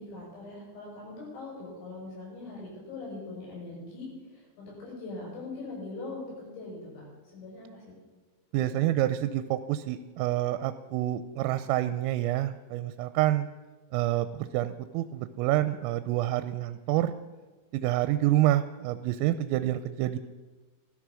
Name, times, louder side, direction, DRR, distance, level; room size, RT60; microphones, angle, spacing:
voice 1, 0.0-7.1 7.3-8.0 8.5-8.8, left 3 dB, 80° left, -4 dB, 9.1 m, -41 dB
voice 2, 8.5-13.5 13.9-17.1 17.7-20.2, right 14 dB, 85° right, 11 dB, 3.2 m, -27 dB
16.0 x 13.0 x 6.2 m, 1.3 s
omnidirectional pair, 5.9 m